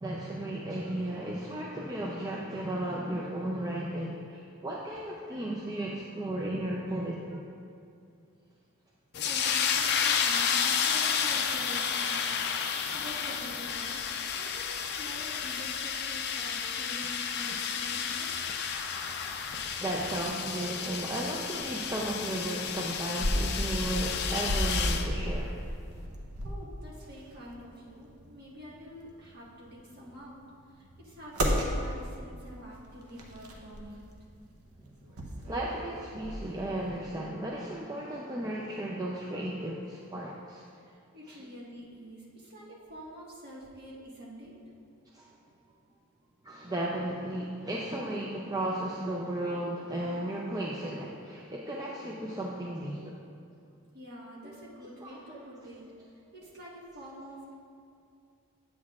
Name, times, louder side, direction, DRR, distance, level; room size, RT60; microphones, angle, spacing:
voice 1, 0.0-7.4 18.5-25.7 35.4-40.6 41.4-41.5 45.1-45.3 46.4-53.1 54.4-54.6 55.0-55.4, right 1 dB, 15° right, -3 dB, 0.4 m, -35 dB
sound 1, 9.1-25.1, left 7 dB, 50° left, 0.4 m, -31 dB
voice 2, 9.2-18.4 26.4-34.0 40.7-45.0 53.9-57.5, equal, 45° right, -5 dB, 1.5 m, -47 dB
sound 2, 17.9-37.0, equal, 80° right, 0.9 m, -36 dB
8.5 x 8.3 x 2.4 m, 2.4 s
head